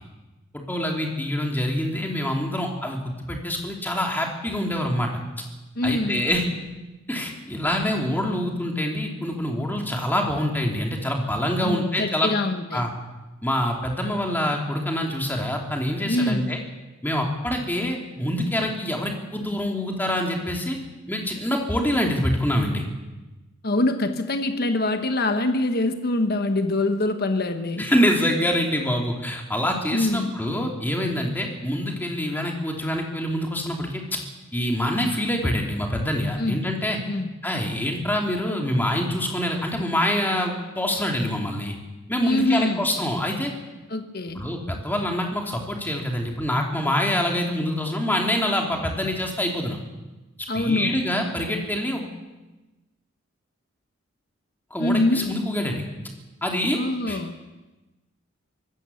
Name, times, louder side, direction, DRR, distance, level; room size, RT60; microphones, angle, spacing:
voice 1, 0.5-5.1 5.8-6.4 7.1-12.3 12.7-12.9 13.4-16.6 17.0-20.8 21.1-22.8 27.8-34.2 34.5-37.0 37.4-41.8 42.1-43.5 44.3-49.8 50.5-52.1 54.7-55.9 56.4-56.8 57.1-57.2, left 1 dB, 10° left, 1 dB, 3.0 m, -25 dB
voice 2, 5.7-6.2 11.6-12.8 16.0-16.5 23.6-27.9 29.9-30.3 36.4-36.6 37.1-37.3 42.2-42.9 43.9-44.4 50.5-50.9 54.8-55.3 56.7-57.3, left 2 dB, 50° left, 7 dB, 1.3 m, -24 dB
24.5 x 15.0 x 7.1 m, 1.1 s
head